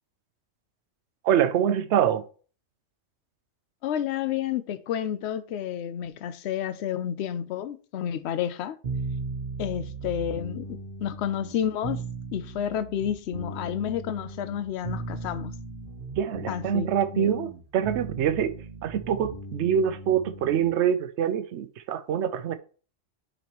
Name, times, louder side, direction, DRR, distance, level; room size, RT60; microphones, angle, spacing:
voice 1, 1.2-2.3 16.2-18.5 18.8-22.6, right 9 dB, 70° right, 0.9 m, -25 dB
voice 2, 3.8-8.8 9.6-12.0 12.3-15.5 16.5-16.9 17.1-17.5, left 9 dB, 65° left, 0.8 m, -30 dB
sound 1, 8.8-20.7, right 3 dB, 50° right, 1.3 m, -37 dB
10.0 x 4.2 x 3.0 m
omnidirectional pair, 1.3 m